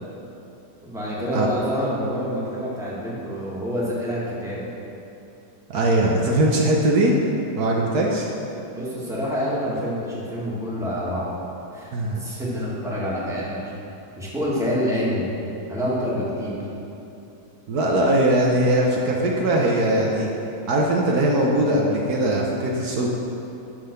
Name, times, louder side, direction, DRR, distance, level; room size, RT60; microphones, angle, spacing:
voice 1, 0.8-4.6 8.7-11.4 11.7-13.7 14.2-15.3 15.7-16.5, equal, ahead, -8 dB, 1.6 m, -27 dB
voice 2, 5.7-7.2 7.6-8.3 11.9-12.2 17.7-20.3 20.7-23.1, right 1 dB, 70° right, -1 dB, 1.3 m, -20 dB
10.5 x 3.8 x 6.7 m, 2.9 s
omnidirectional pair, 1.8 m